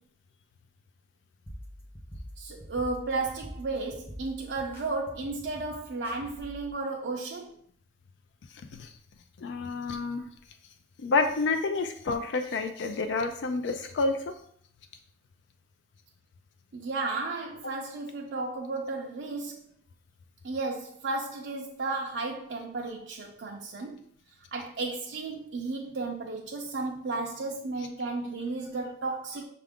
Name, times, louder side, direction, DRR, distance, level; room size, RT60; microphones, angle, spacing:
sound 1, 1.5-6.7, equal, 10° left, 0.6 m, -45 dB
voice 1, 2.4-7.5 16.7-19.6 20.4-24.0 24.5-29.4, right 3 dB, 80° right, 0 dB, 0.5 m, -33 dB
voice 2, 9.4-10.2 11.0-14.2, left 3 dB, 85° left, 7 dB, 0.4 m, -28 dB
5.6 x 2.5 x 3.5 m, 0.63 s
head